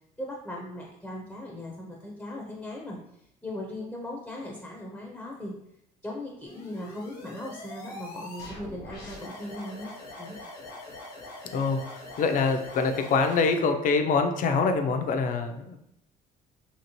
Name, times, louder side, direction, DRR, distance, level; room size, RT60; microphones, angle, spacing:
voice 1, 0.2-3.0 3.4-5.5 6.0-9.9 10.2-10.4, left 1 dB, 5° left, -1 dB, 0.5 m, -38 dB
sound 1, 6.5-13.6, left 2 dB, 80° left, 1.1 m, -43 dB
voice 2, 11.5-15.8, left 4 dB, 50° left, 6 dB, 0.4 m, -25 dB
2.9 x 2.7 x 2.9 m, 0.77 s
cardioid pair, 110°, 17 cm